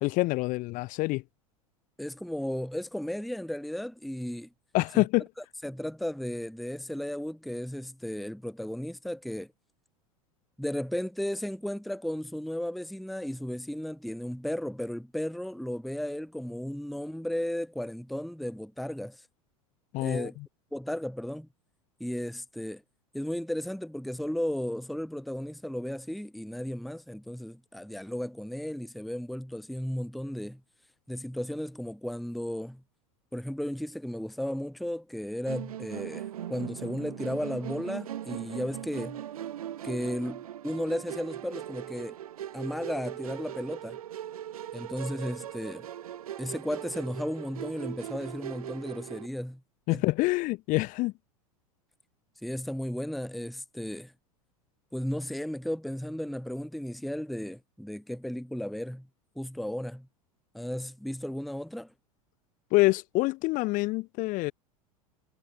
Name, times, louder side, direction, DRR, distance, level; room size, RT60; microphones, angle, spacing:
voice 1, 0.0-1.2 4.7-5.3 19.9-20.5 49.9-51.1 62.7-64.5, left 21 dB, 45° left, 0.9 m, -26 dB
voice 2, 2.0-4.5 4.9-5.0 5.6-9.5 10.6-19.2 20.0-20.4 20.7-21.5 22.0-22.8 23.1-30.6 31.1-32.8 33.3-39.2 39.8-42.2 42.5-44.0 44.7-45.9 46.4-49.6 49.9-50.0 52.4-54.1 54.9-59.1 59.4-60.1 60.5-61.9, equal, ahead, 0.8 m, -34 dB
Musical instrument, 35.5-49.3, right 11 dB, 85° right, 0.4 m, -40 dB
hypercardioid pair, 90°, 18 cm